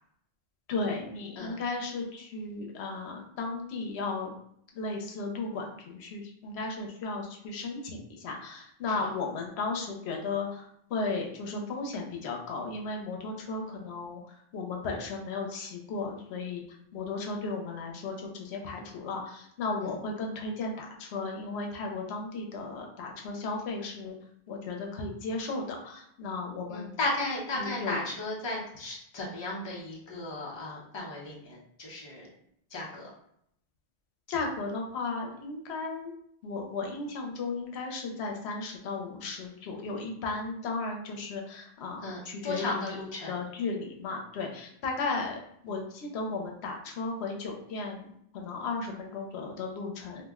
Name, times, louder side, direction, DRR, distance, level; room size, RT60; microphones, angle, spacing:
voice 1, 0.7-4.3 4.8-16.6 16.9-24.2 24.5-26.9 27.6-28.0 34.3-36.1 36.4-43.0 43.3-45.4 45.6-50.3, left 3 dB, 85° left, 1 dB, 0.9 m, -35 dB
voice 2, 26.7-32.3 32.7-33.1 42.0-43.3, left 2 dB, 30° left, -3 dB, 0.6 m, -35 dB
2.5 x 2.0 x 3.5 m, 0.72 s
omnidirectional pair, 1.1 m